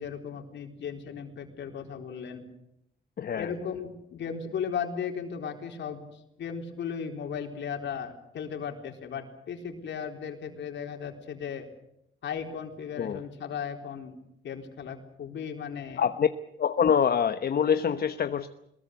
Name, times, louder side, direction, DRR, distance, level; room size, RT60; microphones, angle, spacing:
voice 1, 0.0-2.5 3.4-11.7 12.2-14.2 14.4-16.0, left 7 dB, 65° left, 4 dB, 4.1 m, -36 dB
voice 2, 3.2-3.5 13.0-13.2 16.0-16.3 16.6-18.5, left 7 dB, 50° left, 10 dB, 1.1 m, -25 dB
22.5 x 21.5 x 8.3 m, 0.81 s
cardioid pair, 90°, 20 cm